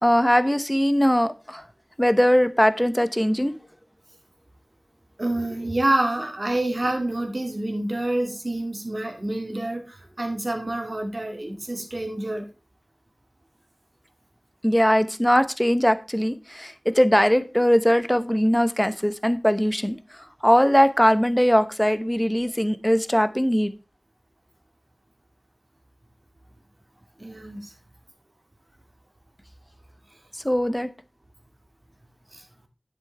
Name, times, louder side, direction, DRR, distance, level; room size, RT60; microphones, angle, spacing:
voice 1, 0.0-1.6 2.0-3.5 14.6-20.0 20.4-23.7 30.4-30.9, equal, 10° left, 12 dB, 0.8 m, -20 dB
voice 2, 5.2-12.5 27.2-27.7 32.3-32.4, right 1 dB, 50° right, 3 dB, 2.2 m, -27 dB
9.9 x 8.2 x 3.3 m, 0.30 s
wide cardioid pair, 50°, 0 cm